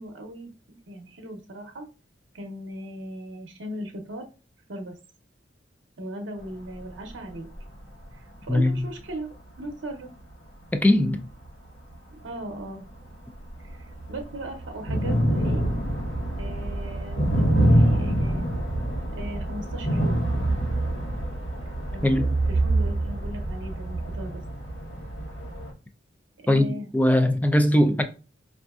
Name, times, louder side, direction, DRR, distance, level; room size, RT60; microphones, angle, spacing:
voice 1, 0.0-1.9 2.3-4.3 4.7-4.9 6.0-7.5 8.1-9.3 9.6-10.1 12.1-12.8 13.6-15.6 16.4-18.4 19.1-20.2 21.9-22.2 22.5-24.4 26.4-26.9, right 1 dB, 75° right, 0.7 m, -38 dB
sound 1, 6.9-7.0 7.5-7.6 8.6-8.7 9.3-9.4 11.4-11.5 11.9-12.0 13.1-13.2 13.4-25.7, right 1 dB, 85° left, 1.1 m, -25 dB
voice 2, 8.5-8.9 10.7-11.3 22.0-22.3 26.5-26.6 26.9-28.0, left 1 dB, 10° left, 0.3 m, -20 dB
5.1 x 2.6 x 2.3 m
head